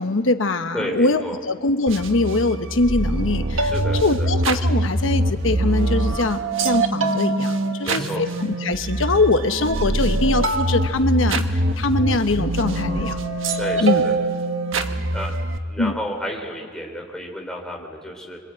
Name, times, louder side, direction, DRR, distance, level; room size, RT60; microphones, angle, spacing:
voice 1, 0.0-3.7 4.0-13.2 13.8-14.0 15.8-15.9, left 2 dB, 85° left, 8 dB, 1.0 m, -22 dB
voice 2, 0.7-1.4 3.6-4.3 7.8-8.3 13.6-14.2 15.1-15.3 15.7-18.4, equal, 5° left, 0 dB, 3.6 m, -31 dB
sound 1, 1.9-15.6, right 2 dB, 85° right, 1.4 m, -23 dB
26.0 x 23.5 x 8.8 m, 2.1 s
head